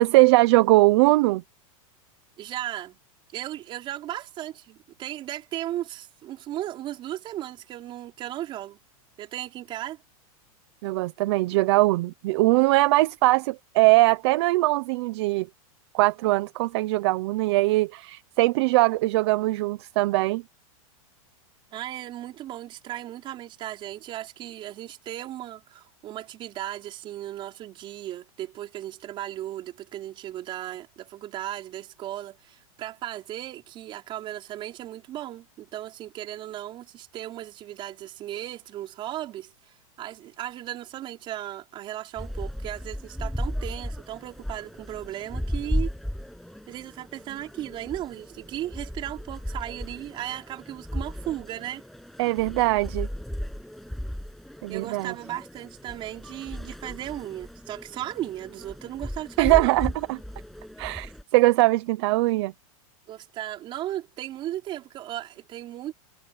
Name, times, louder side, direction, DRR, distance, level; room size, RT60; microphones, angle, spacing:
voice 1, 0.0-1.4 10.8-15.5 15.9-20.4 52.2-53.1 54.6-55.1 59.4-60.2 60.8-62.5, right 20 dB, 50° right, 0.8 m, -21 dB
voice 2, 2.4-3.0 3.3-8.8 9.2-10.0 21.7-39.5 40.0-45.9 46.7-51.8 54.7-59.8 63.1-65.9, right 13 dB, 25° right, 4.8 m, -36 dB
sound 1, 42.2-61.2, equal, ahead, 7.9 m, -35 dB
supercardioid pair, 160°, 18 cm